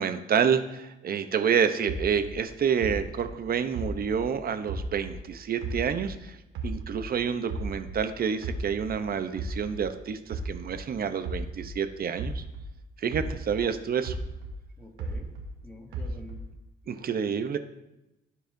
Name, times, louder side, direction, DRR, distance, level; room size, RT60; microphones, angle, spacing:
voice 1, 0.0-6.4 6.6-12.4 13.0-14.1 16.9-17.6, right 7 dB, 50° right, 9 dB, 0.7 m, -28 dB
sound 1, 1.9-5.3 5.6-8.1 8.4-12.8 13.1-15.6 15.9-16.6, right 2 dB, 90° right, 1.2 m, -35 dB
voice 2, 14.8-15.3 15.6-16.4, left 1 dB, 10° left, 0 dB, 1.8 m, -47 dB
14.5 x 4.8 x 2.6 m, 0.94 s
cardioid pair, 90°, 20 cm